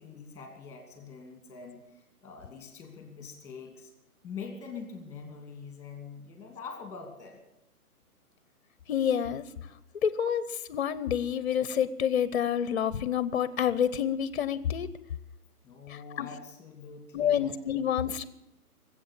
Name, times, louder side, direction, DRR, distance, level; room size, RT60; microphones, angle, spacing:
voice 1, 0.0-3.9 4.2-7.4 15.6-17.9, left 5 dB, 5° left, 5 dB, 2.5 m, -44 dB
voice 2, 8.9-9.4 10.0-14.9 15.9-16.3 17.1-18.2, left 9 dB, 45° left, 17 dB, 0.8 m, -28 dB
19.5 x 8.2 x 8.5 m, 0.85 s
hypercardioid pair, 145°, 45 cm